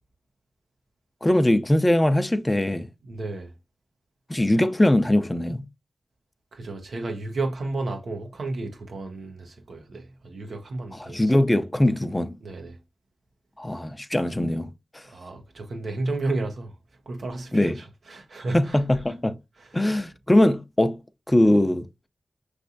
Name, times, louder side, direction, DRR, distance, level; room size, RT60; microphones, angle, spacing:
voice 1, 1.2-2.9 4.3-5.6 10.9-12.4 13.6-14.7 17.5-17.8 18.5-19.4 19.7-21.0 21.3-21.9, left 1 dB, 20° left, 0.5 m, -21 dB
voice 2, 3.0-3.5 6.5-11.2 12.4-12.8 15.1-16.7 17.1-18.8 19.6-19.7, right 2 dB, 85° right, 0.9 m, -32 dB
5.7 x 3.3 x 2.6 m
cardioid pair, 55°, 0 cm